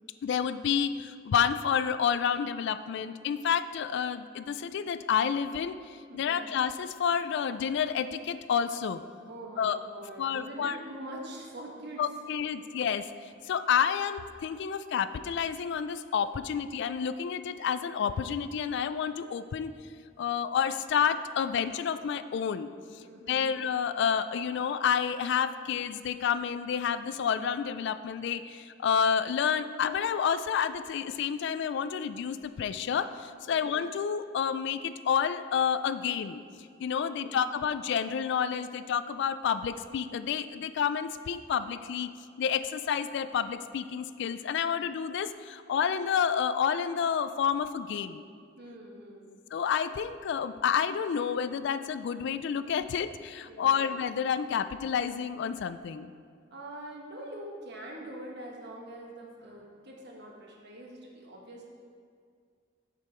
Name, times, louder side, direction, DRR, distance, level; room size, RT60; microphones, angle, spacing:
voice 1, 0.2-5.8 6.1-9.0 9.6-9.8 10.2-10.8 12.0-13.1 13.4-19.7 20.2-22.7 22.9-36.4 36.8-42.1 42.4-48.2 49.5-56.1, left 7 dB, 65° left, 13 dB, 0.3 m, -29 dB
voice 2, 6.1-6.4 9.2-12.0 23.0-23.4 33.5-33.8 37.1-37.4 48.6-49.3 53.5-53.8 56.5-61.7, right 1 dB, 60° right, -1 dB, 1.2 m, -44 dB
8.0 x 5.3 x 4.4 m, 2.1 s
head